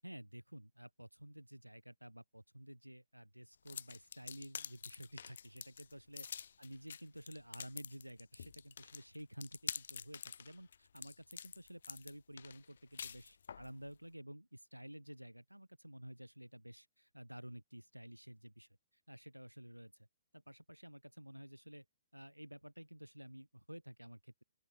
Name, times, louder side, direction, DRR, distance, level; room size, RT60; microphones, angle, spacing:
voice 1, 0.0-6.3 6.6-18.7 19.1-19.9 20.3-21.8 22.1-24.4, right 1 dB, 90° right, 6.6 m, -52 dB
sound 1, 3.6-13.7, left 7 dB, 55° left, 1.5 m, -48 dB
open air
figure-of-eight pair, 120°, 0 cm